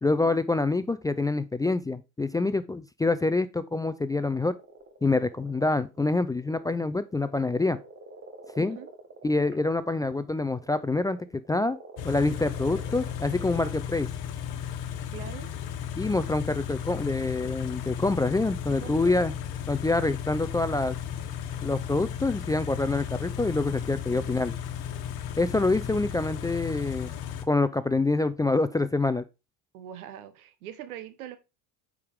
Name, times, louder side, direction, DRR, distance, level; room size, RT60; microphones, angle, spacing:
voice 1, 0.0-4.5 5.0-7.8 8.6-8.8 9.2-11.2 11.5-11.8 12.0-14.1 16.0-19.4 19.7-21.0 21.6-24.5 25.4-27.1 27.5-29.2, left 3 dB, 10° left, 0.3 m, -26 dB
sound 1, 4.1-13.7, right 3 dB, 30° right, 1.7 m, -49 dB
voice 2, 8.6-8.9 15.1-15.5 18.6-19.2 24.1-24.5 29.7-31.4, right 11 dB, 90° right, 1.1 m, -43 dB
Car / Idling, 12.0-27.4, left 9 dB, 60° left, 1.3 m, -35 dB
8.4 x 4.9 x 3.5 m
hypercardioid pair, 85°, 42 cm